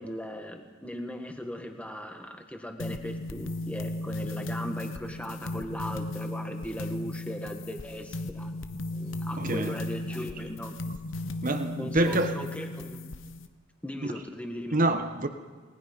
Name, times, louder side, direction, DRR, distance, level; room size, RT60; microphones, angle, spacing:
voice 1, 0.0-8.5 8.9-10.8 11.8-13.0 13.8-14.8, equal, 5° left, 1.7 m, -38 dB
sound 1, 2.8-13.5, left 1 dB, 70° left, 1.0 m, -36 dB
voice 2, 9.4-9.8 11.4-12.4 14.0-14.1 14.7-15.3, right 2 dB, 40° right, 1.2 m, -26 dB
29.0 x 19.0 x 5.4 m
head